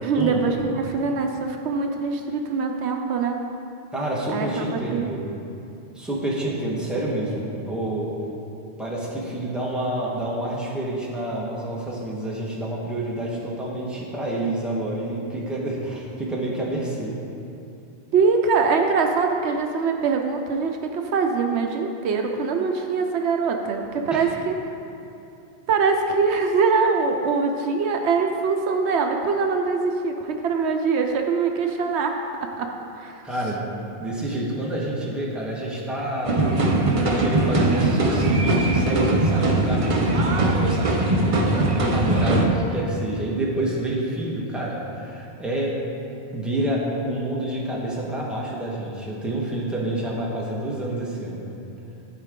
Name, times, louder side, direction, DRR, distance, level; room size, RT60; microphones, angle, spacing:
voice 1, 0.0-3.4 4.3-5.1 18.1-24.6 25.7-32.1 32.6-33.2, right 4 dB, 80° right, 4 dB, 0.9 m, -23 dB
voice 2, 3.9-5.2 5.9-8.1 8.8-17.1 24.1-24.2 33.2-33.6 34.0-36.6 37.0-45.7 46.3-51.5, right 1 dB, ahead, -5 dB, 1.2 m, -28 dB
sound 1, 36.2-42.5, right 2 dB, 35° right, 0.6 m, -20 dB
13.0 x 4.4 x 3.7 m, 2.8 s
omnidirectional pair, 1.1 m